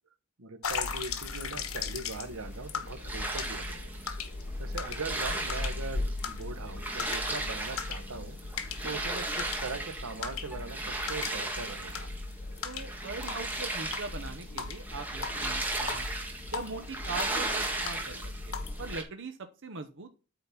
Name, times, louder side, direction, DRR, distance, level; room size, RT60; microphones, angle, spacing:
voice 1, 0.4-4.0 4.6-12.1, right 3 dB, 90° right, 9 dB, 1.2 m, -41 dB
sound 1, 0.6-19.0, left 4 dB, 85° left, 1.2 m, -38 dB
sound 2, 0.8-19.0, right 2 dB, 10° right, 1.8 m, -37 dB
voice 2, 12.6-16.1 16.5-18.2 18.5-20.1, right 4 dB, 60° right, 7 dB, 0.8 m, -41 dB
8.8 x 3.9 x 5.8 m, 0.33 s
head